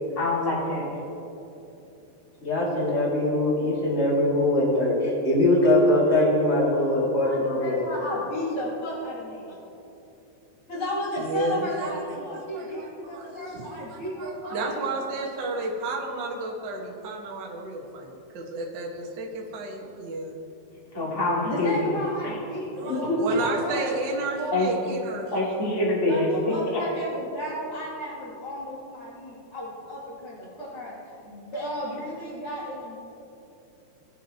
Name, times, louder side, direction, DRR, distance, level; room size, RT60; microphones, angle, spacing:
voice 1, 0.2-0.9 20.9-21.9 22.2-22.3 24.5-24.7 25.3-26.8, left 2 dB, 10° left, -6 dB, 1.7 m, -25 dB
voice 2, 2.4-7.9 22.8-23.2, left 1 dB, 25° left, -5 dB, 1.7 m, -22 dB
voice 3, 7.1-9.5 10.7-14.7 21.4-23.1 23.4-24.6 26.0-30.9 31.2-33.0, equal, 40° left, -9 dB, 2.9 m, -33 dB
voice 4, 11.2-20.4 22.7-25.6, right 2 dB, 80° right, -2 dB, 1.0 m, -32 dB
19.5 x 7.4 x 2.8 m, 2.9 s
omnidirectional pair, 4.4 m